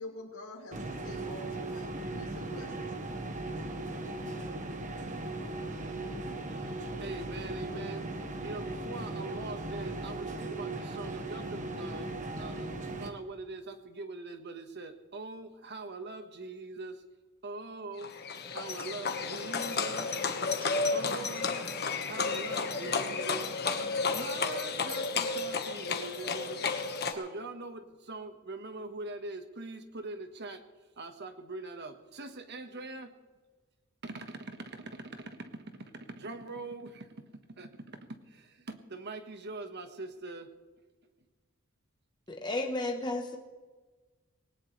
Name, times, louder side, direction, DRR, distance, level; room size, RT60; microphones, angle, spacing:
voice 1, 0.0-2.9, left 1 dB, 90° left, -5 dB, 2.5 m, -46 dB
sound 1, 0.7-13.1, right 2 dB, 35° right, 1.3 m, -38 dB
voice 2, 6.5-8.1 8.4-17.0 17.4-18.1 18.5-20.2 20.9-21.7 22.1-23.5 24.1-26.6 27.1-30.6 31.0-33.1 34.0-40.5, right 3 dB, 50° right, 7 dB, 1.4 m, -42 dB
Livestock farm animals working animals, 18.0-27.1, left 4 dB, 50° left, 1.4 m, -32 dB
voice 3, 42.3-43.4, left 2 dB, 20° left, 2 dB, 1.0 m, -33 dB
20.0 x 18.5 x 3.3 m, 1.3 s
head